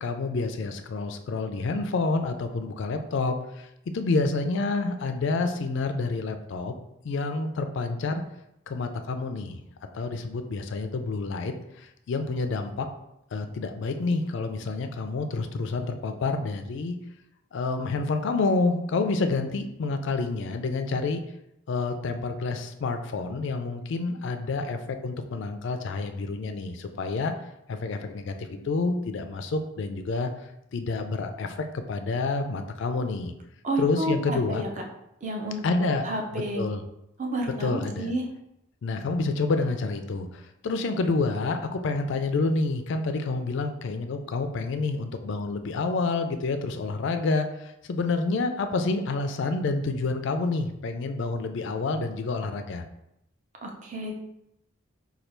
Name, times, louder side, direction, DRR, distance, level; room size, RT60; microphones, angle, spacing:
voice 1, 0.0-3.7 3.9-6.7 7.0-8.2 8.7-9.6 9.9-12.9 13.3-17.0 17.5-21.2 21.7-27.3 27.7-30.3 30.7-33.3 33.8-34.6 35.6-36.0 36.3-36.8 37.6-38.1 38.8-52.8, left 3 dB, 55° left, 7 dB, 0.3 m, -28 dB
voice 2, 33.6-34.8 35.2-35.6 36.0-36.6 37.2-38.2 53.6-54.1, right 1 dB, 35° right, 1 dB, 0.5 m, -30 dB
3.2 x 2.3 x 4.3 m, 0.83 s
head